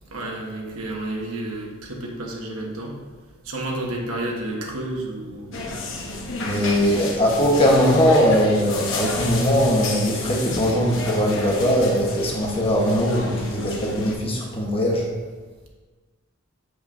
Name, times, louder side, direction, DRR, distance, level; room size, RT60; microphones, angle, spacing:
voice 1, 0.1-3.0 3.4-7.1, right 1 dB, 85° right, 0 dB, 1.4 m, -32 dB
sound 1, 5.5-14.1, left 2 dB, 60° left, 1.2 m, -30 dB
voice 2, 6.4-15.1, equal, 25° left, -1 dB, 1.3 m, -20 dB
8.0 x 7.7 x 2.8 m, 1.4 s
head